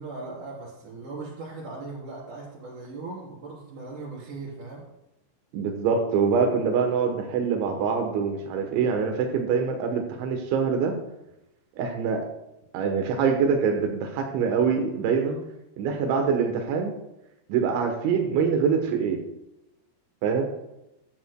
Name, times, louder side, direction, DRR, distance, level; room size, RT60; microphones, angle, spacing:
voice 1, 0.0-4.8, right 3 dB, 45° right, -4 dB, 5.0 m, -38 dB
voice 2, 5.5-11.0 11.8-12.3 12.7-15.4 15.8-16.9 17.5-19.2 20.2-20.4, right 6 dB, 90° right, 4 dB, 3.5 m, -24 dB
14.5 x 11.0 x 2.2 m, 0.90 s
omnidirectional pair, 5.1 m